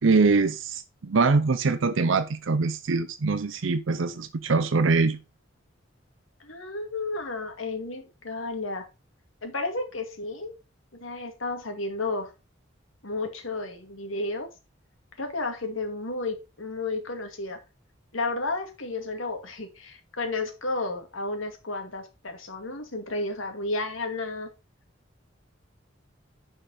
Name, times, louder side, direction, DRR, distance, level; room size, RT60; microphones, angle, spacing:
voice 1, 0.0-5.2, right 4 dB, 70° right, 0.6 m, -23 dB
voice 2, 6.4-8.9 9.4-10.5 10.9-12.3 13.0-14.5 15.2-17.6 18.1-24.5, left 2 dB, 90° left, 2.1 m, -32 dB
10.0 x 5.2 x 3.9 m
head